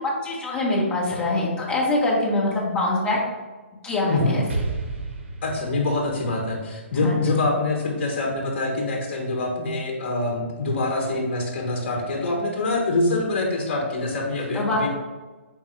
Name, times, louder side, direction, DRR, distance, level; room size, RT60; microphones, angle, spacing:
voice 1, 0.2-3.2 3.8-4.4 7.0-7.2 14.5-14.9, left 2 dB, 15° left, -5 dB, 1.1 m, -24 dB
Explosion, 4.5-8.3, right 3 dB, 60° right, 0.9 m, -34 dB
voice 2, 5.4-14.9, left 2 dB, 50° left, 1 dB, 1.1 m, -25 dB
4.5 x 3.5 x 3.2 m, 1.2 s
hypercardioid pair, 150°, 7 cm